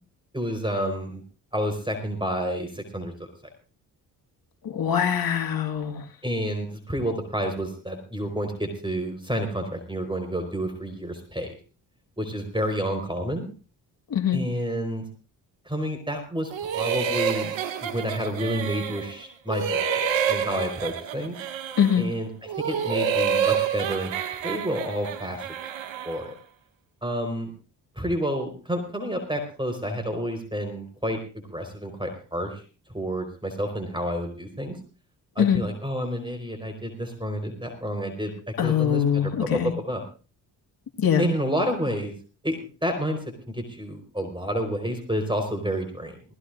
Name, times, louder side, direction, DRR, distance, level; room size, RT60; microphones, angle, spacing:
voice 1, 0.3-1.2 1.5-3.1 6.2-11.5 12.2-13.5 14.3-15.0 15.7-17.5 17.8-21.4 21.9-24.1 24.4-25.4 26.0-26.3 27.0-27.5 28.0-32.6 32.9-34.8 35.3-40.0 41.2-42.1 42.4-43.2 43.5-46.2, equal, 10° right, 6 dB, 4.5 m, -29 dB
voice 2, 4.6-6.0 14.1-14.4 21.8-22.1 35.4-35.6 38.6-39.7 41.0-41.2, left 8 dB, 45° left, 3 dB, 2.1 m, -23 dB
sound 1, 16.5-19.2 19.5-22.0 22.5-26.2, right 7 dB, 65° right, 2.0 m, -28 dB
20.5 x 16.5 x 2.6 m, 0.36 s
hypercardioid pair, 45°, 47 cm